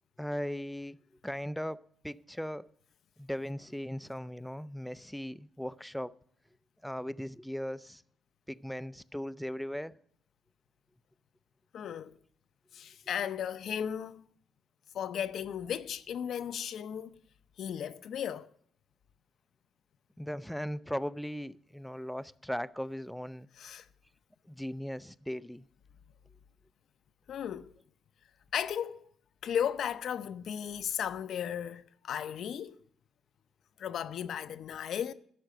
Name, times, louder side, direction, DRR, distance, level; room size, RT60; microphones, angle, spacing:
voice 1, 0.2-1.0 1.2-2.7 3.2-6.1 6.8-8.0 8.5-10.0 20.2-23.5 24.5-25.7, equal, 5° left, 0.4 m, -38 dB
voice 2, 11.7-12.1 12.7-14.2 14.9-17.2 17.6-18.5 23.6-23.9 27.3-27.7 28.5-29.0 29.4-32.8 33.8-35.1, left 9 dB, 65° left, 0.6 m, -35 dB
12.0 x 6.6 x 7.7 m
cardioid pair, 90°, 0 cm